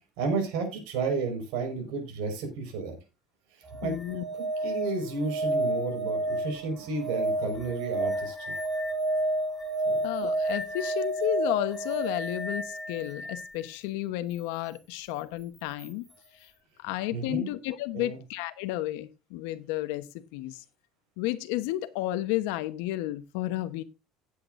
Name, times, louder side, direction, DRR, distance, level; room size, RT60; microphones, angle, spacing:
voice 1, 0.2-3.0 3.8-3.9 4.6-8.5 9.8-10.0 17.1-17.5 17.9-18.2, right 4 dB, 70° right, 4.9 m, -32 dB
sound 1, 3.7-13.5 15.8-15.9, right 1 dB, ahead, 1.8 m, -31 dB
voice 2, 3.8-4.2 10.0-16.0 16.3-16.5 16.8-20.6 21.2-23.8, left 15 dB, 80° left, 1.0 m, -32 dB
17.5 x 8.4 x 2.5 m
cardioid pair, 175°, 0 cm